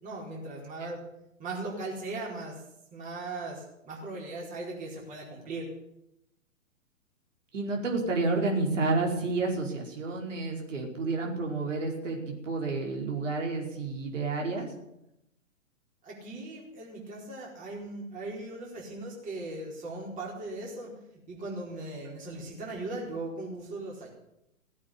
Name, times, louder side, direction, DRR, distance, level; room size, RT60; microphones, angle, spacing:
voice 1, 0.0-1.0 1.4-2.6 2.9-5.7 16.0-21.0 21.3-24.1, right 2 dB, 20° right, -2 dB, 4.4 m, -38 dB
voice 2, 7.5-14.7, right 3 dB, 65° right, 0 dB, 4.9 m, -30 dB
17.0 x 8.6 x 9.9 m, 0.82 s
hypercardioid pair, 130°, 40 cm